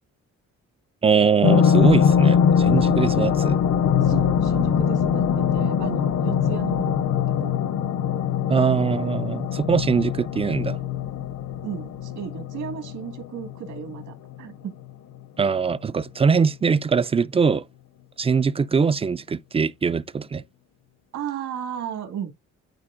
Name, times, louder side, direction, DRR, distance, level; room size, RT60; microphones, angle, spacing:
voice 1, 1.0-3.6 8.5-10.8 15.4-17.7 18.2-20.4, right 5 dB, 20° right, 0.3 m, -22 dB
sound 1, 1.4-14.4 14.8-14.9, left 7 dB, 55° left, 0.6 m, -22 dB
voice 2, 4.0-7.5 11.6-14.8 21.1-22.3, right 8 dB, 85° right, 2.0 m, -34 dB
12.0 x 4.2 x 2.5 m
cardioid pair, 90°, 30 cm